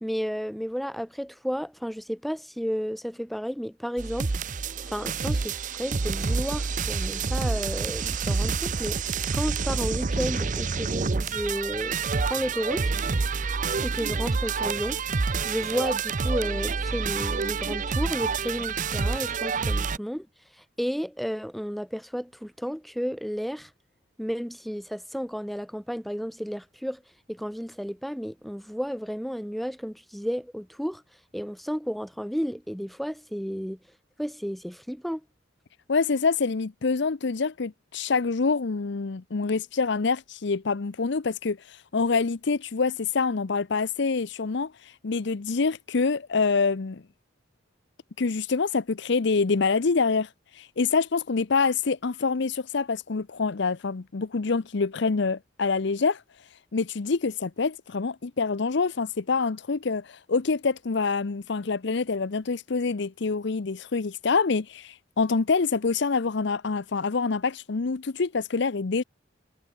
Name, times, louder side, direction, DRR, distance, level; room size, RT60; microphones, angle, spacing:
voice 1, 0.0-4.4 4.9-9.0 9.3-12.0 12.2-12.9 13.8-15.0 15.4-20.3 20.8-23.7 24.2-27.0 27.3-31.0 31.3-33.8 34.2-35.2, equal, ahead, 2.1 m, -32 dB
sound 1, 4.0-20.0, right 4 dB, 40° right, 0.6 m, -28 dB
voice 2, 35.9-47.0 48.2-50.3 50.5-56.2 56.7-69.0, left 4 dB, 60° left, 0.6 m, -26 dB
head